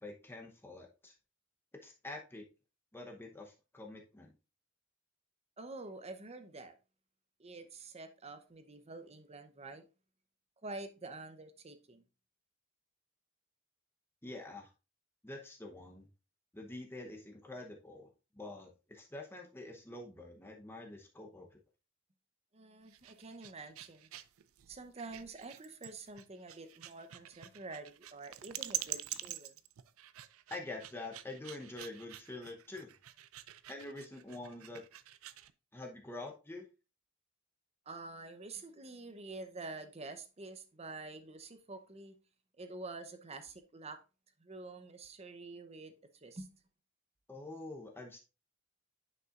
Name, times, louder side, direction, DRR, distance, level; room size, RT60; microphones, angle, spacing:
voice 1, 0.0-1.1 1.8-2.4 2.9-4.3 14.2-14.7 15.2-16.1 16.5-18.1 18.4-21.6 30.5-32.9 33.7-34.8 35.7-36.7 47.3-48.2, left 2 dB, 10° left, 0.8 m, -46 dB
voice 2, 5.6-6.8 7.4-9.9 10.6-12.0 22.5-24.1 24.7-29.6 37.9-42.2 42.6-44.0 44.4-46.5, right 3 dB, 30° right, 0.7 m, -47 dB
sound 1, 22.8-35.5, right 13 dB, 85° right, 0.4 m, -46 dB
9.3 x 5.4 x 2.5 m
head